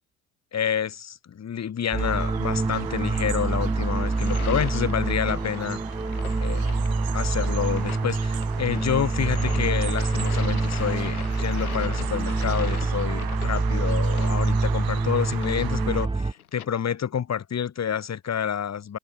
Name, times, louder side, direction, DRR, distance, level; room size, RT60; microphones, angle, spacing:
voice 1, 0.5-5.8 6.4-6.8 7.1-19.0, left 8 dB, 35° left, 3.5 m, -28 dB
sound 1, 1.9-16.3, right 3 dB, 10° right, 1.7 m, -26 dB
Bird vocalization bird call bird song, 2.0-16.1, right 14 dB, 55° right, 7.8 m, -39 dB
sound 2, 4.0-16.7, left 10 dB, 80° left, 4.0 m, -41 dB
figure-of-eight pair, 55°, 43 cm